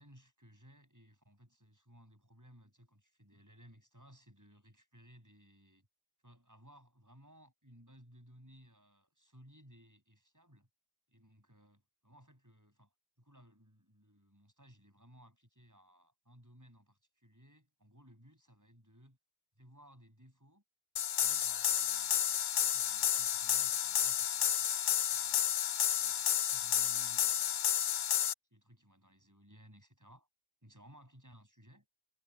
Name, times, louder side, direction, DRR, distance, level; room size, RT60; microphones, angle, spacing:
voice 1, 0.0-5.9 6.2-10.7 11.1-19.2 19.6-20.6 21.1-25.5 25.9-28.1 28.5-30.3 30.6-31.9, equal, 15° right, 7.8 m, -61 dB
sound 1, 21.0-28.3, left 10 dB, 55° left, 0.6 m, -31 dB
omnidirectional pair, 1.2 m